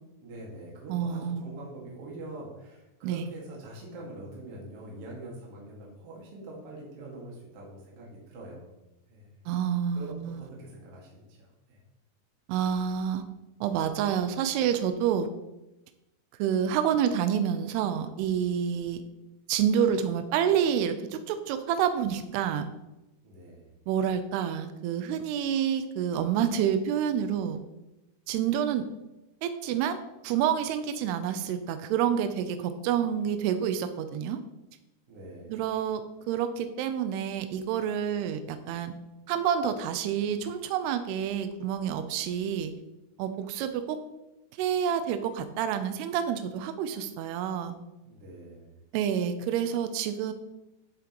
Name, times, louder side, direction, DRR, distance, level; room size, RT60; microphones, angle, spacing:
voice 1, 0.2-8.7 9.1-9.3 10.0-11.8 23.2-23.7 35.1-35.6 48.0-48.8, right 1 dB, 50° right, -3 dB, 1.8 m, -44 dB
voice 2, 0.9-1.5 3.0-3.3 9.5-10.5 12.5-13.2 13.6-15.3 16.4-19.0 19.5-22.7 23.9-27.6 28.3-28.9 29.4-34.4 35.5-36.0 36.3-38.9 39.3-42.7 43.2-44.0 44.6-47.8 48.9-50.3, right 8 dB, 90° right, 9 dB, 2.3 m, -28 dB
10.5 x 7.7 x 3.0 m, 0.96 s
omnidirectional pair, 5.4 m